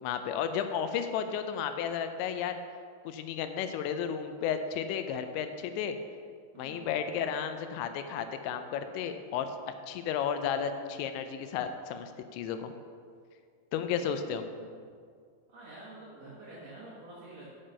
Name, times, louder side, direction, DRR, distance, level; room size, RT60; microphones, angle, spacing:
voice 1, 0.0-2.6 3.1-6.0 6.6-9.5 9.9-12.7 13.7-14.4, left 8 dB, 85° left, 8 dB, 2.9 m, -33 dB
voice 2, 6.5-6.9 14.0-14.8 15.5-17.5, right 2 dB, 55° right, -8 dB, 1.9 m, -49 dB
8.8 x 6.9 x 5.4 m, 2.1 s
omnidirectional pair, 5.3 m